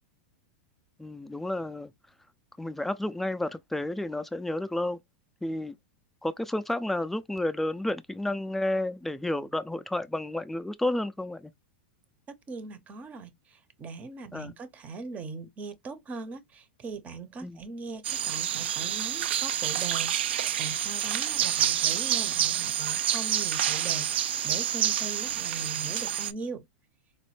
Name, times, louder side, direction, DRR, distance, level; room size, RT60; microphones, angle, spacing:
voice 1, 1.0-1.9 2.6-5.0 5.4-5.7 6.2-11.5 14.3-14.5 17.4-17.6, left 1 dB, 5° left, 0.3 m, -31 dB
voice 2, 12.5-26.7, right 4 dB, 25° right, 0.7 m, -40 dB
sound 1, 18.0-26.3, right 11 dB, 80° right, 0.4 m, -28 dB
4.1 x 2.1 x 3.1 m
hypercardioid pair, 125°, 6 cm